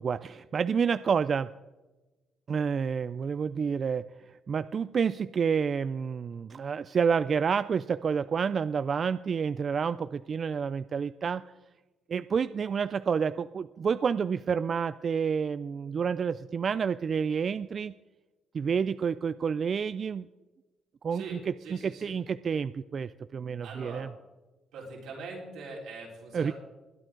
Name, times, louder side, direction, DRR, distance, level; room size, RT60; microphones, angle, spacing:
voice 1, 0.0-1.5 2.5-11.4 12.1-17.9 18.5-20.3 21.0-21.5 21.8-24.1 26.3-26.5, right 6 dB, 50° right, 15 dB, 0.3 m, -29 dB
voice 2, 21.1-22.2 23.6-24.1 24.7-26.5, right 3 dB, 85° right, -3 dB, 4.4 m, -42 dB
21.0 x 9.1 x 3.8 m, 1.1 s
cardioid pair, 90°, 0 cm